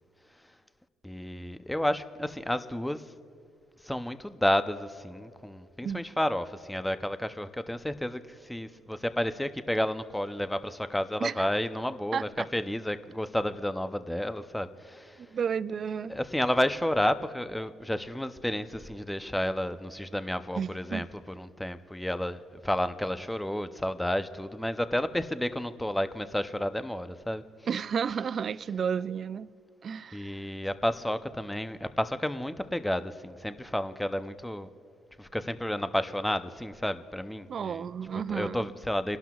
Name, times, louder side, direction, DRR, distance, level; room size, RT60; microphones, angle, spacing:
voice 1, 1.0-3.0 3.8-15.2 16.1-27.8 30.1-34.7 35.2-37.9 38.3-39.2, left 1 dB, 5° left, 0.6 m, -31 dB
voice 2, 12.1-12.5 15.2-16.2 20.6-21.1 27.7-29.5 29.8-30.5 37.5-38.7, right 7 dB, 50° right, 0.3 m, -32 dB
29.5 x 12.0 x 2.4 m
supercardioid pair, 75°, 0 cm